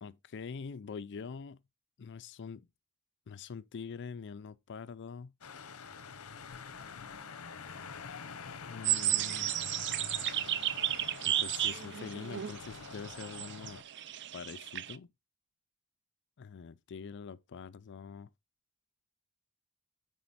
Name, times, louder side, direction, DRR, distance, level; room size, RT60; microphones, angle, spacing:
voice 1, 0.0-1.6 2.0-2.7 3.3-5.3 8.6-9.7 11.2-13.8 14.3-15.1 16.4-18.3, left 5 dB, 55° left, 0.4 m, -44 dB
sound 1, 5.4-13.8, left 5 dB, 75° left, 0.9 m, -46 dB
sound 2, 8.8-15.0, right 12 dB, 55° right, 0.5 m, -33 dB
9.2 x 4.2 x 4.1 m
head